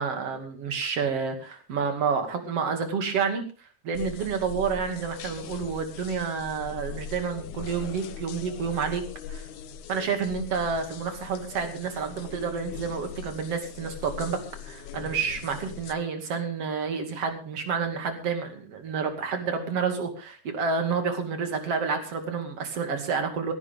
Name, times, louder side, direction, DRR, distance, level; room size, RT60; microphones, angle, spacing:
voice 1, 0.0-9.0 9.3-9.5 9.9-14.4 14.6-23.5, right 5 dB, 55° right, 6 dB, 3.4 m, -29 dB
sound 1, 3.9-15.9, left 6 dB, 90° left, 2.5 m, -41 dB
17.5 x 16.5 x 3.7 m, 0.36 s
omnidirectional pair, 3.4 m